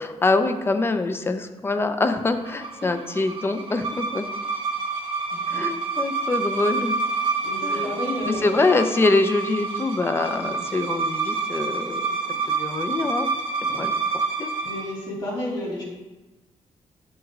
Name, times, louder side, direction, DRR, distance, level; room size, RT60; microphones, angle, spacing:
voice 1, 0.0-4.3 5.5-7.0 7.6-7.9 8.2-12.2 12.5-13.3 13.8-14.5, left 3 dB, 20° left, 9 dB, 0.5 m, -24 dB
sound 1, 2.3-14.9, right 4 dB, 45° right, 1.0 m, -28 dB
voice 2, 7.4-8.6 10.3-10.5 12.3-12.4 13.6-13.8 14.6-15.8, left 1 dB, 45° left, -4 dB, 2.7 m, -31 dB
8.9 x 6.2 x 3.6 m, 1.1 s
wide cardioid pair, 175°, 12 cm